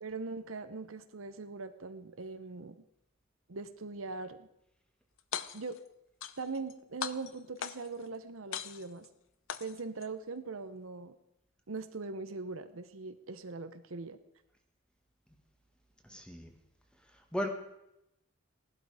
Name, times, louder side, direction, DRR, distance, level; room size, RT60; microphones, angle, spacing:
voice 1, 0.0-2.8 3.5-4.5 5.5-5.8 6.4-9.1 9.6-11.2 11.7-14.2, right 3 dB, 80° right, 10 dB, 0.9 m, -41 dB
sound 1, 5.2-5.8 6.2-6.7 7.0-8.0 8.5-9.1 9.5-10.1, left 8 dB, 70° left, 0.7 m, -39 dB
voice 2, 16.0-16.5 17.1-17.5, equal, 5° left, 4 dB, 1.5 m, -36 dB
16.5 x 12.0 x 4.9 m, 0.86 s
head